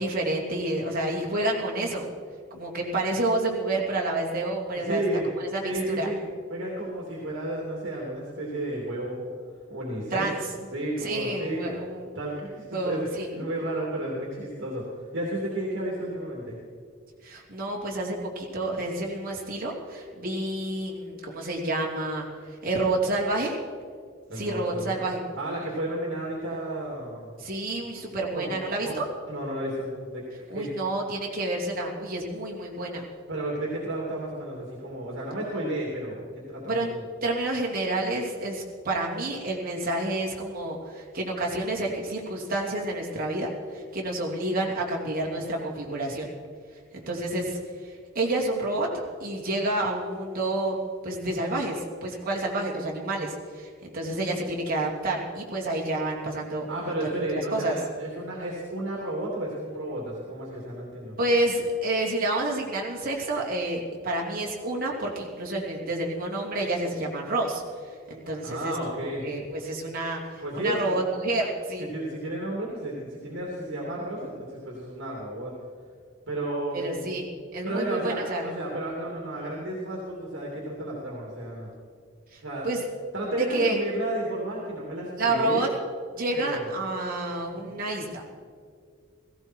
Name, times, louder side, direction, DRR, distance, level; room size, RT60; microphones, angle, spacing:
voice 1, 0.0-2.1 2.5-5.0 5.4-5.7 6.0-6.1 10.1-10.4 11.0-12.1 12.7-13.3 17.2-23.6 24.3-25.2 27.4-29.0 30.5-33.0 36.7-36.9 37.2-46.3 46.9-50.8 51.0-57.8 61.2-67.6 68.1-68.8 69.2-71.8 76.7-77.2 77.5-78.5 82.3-82.8 83.5-83.8 85.2-85.7 86.1-88.2, right 2 dB, 45° right, -2 dB, 2.9 m, -29 dB
voice 2, 4.7-5.3 5.6-6.2 6.5-9.3 9.7-10.3 10.7-11.6 12.1-14.9 15.1-16.6 24.3-25.0 25.3-27.3 28.3-28.6 28.8-29.0 29.3-30.2 30.5-30.7 33.3-37.0 56.7-61.2 68.4-69.3 70.4-71.0 71.9-75.5 76.3-77.0 77.6-81.7 82.4-82.7 83.1-85.7 86.3-86.7 87.6-87.8, right 1 dB, 65° right, -3 dB, 2.8 m, -32 dB
17.5 x 16.0 x 4.6 m, 2.1 s
head